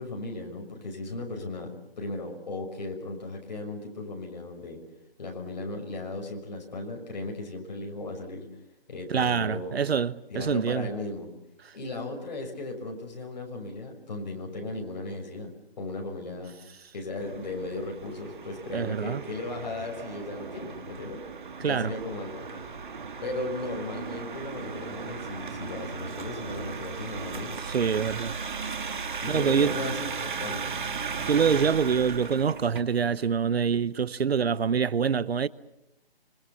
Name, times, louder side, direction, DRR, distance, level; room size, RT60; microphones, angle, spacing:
voice 1, 0.0-1.7 2.0-4.8 5.2-8.4 8.9-9.8 10.3-11.3 11.7-15.5 15.8-16.5 16.9-21.2 21.6-22.6 23.2-27.6 29.2-30.8, left 2 dB, 45° left, 6.2 m, -36 dB
voice 2, 9.1-10.9 11.6-11.7 18.7-19.2 21.6-21.9 27.6-28.3 29.3-29.8 31.2-35.5, right 6 dB, 85° right, 0.9 m, -25 dB
sound 1, 17.2-32.8, right 5 dB, 50° right, 2.1 m, -36 dB
26.5 x 25.0 x 7.1 m
hypercardioid pair, 175°, 30 cm